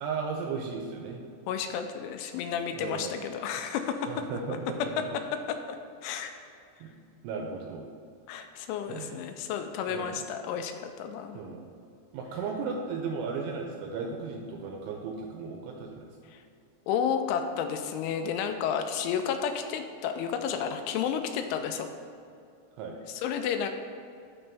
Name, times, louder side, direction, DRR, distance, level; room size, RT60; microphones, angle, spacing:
voice 1, 0.0-1.2 2.7-3.1 4.1-5.1 6.8-6.9 7.2-7.9 8.9-9.2 9.9-10.2 11.3-11.7 12.1-16.1 22.8-23.0, right 5 dB, 85° right, 2 dB, 2.8 m, -35 dB
voice 2, 1.5-4.1 5.3-6.3 8.3-11.4 16.3-16.4 16.9-21.9 23.1-23.7, left 7 dB, 85° left, 7 dB, 2.8 m, -32 dB
13.0 x 4.4 x 3.4 m, 2.4 s
omnidirectional pair, 5.8 m